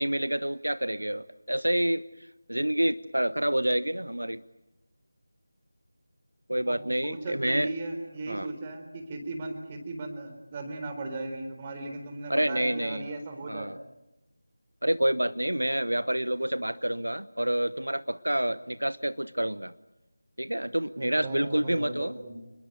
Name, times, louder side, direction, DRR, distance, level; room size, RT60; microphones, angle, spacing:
voice 1, 0.0-2.0 2.5-4.4 6.5-7.7 8.3-8.5 12.3-13.1 13.5-13.8 14.8-19.7 20.4-22.2, right 1 dB, 75° right, 15 dB, 1.0 m, -28 dB
voice 2, 6.7-13.7 21.0-22.4, right 2 dB, 20° right, 5 dB, 3.9 m, -37 dB
30.0 x 21.0 x 9.3 m, 0.94 s
figure-of-eight pair, 165°, 0 cm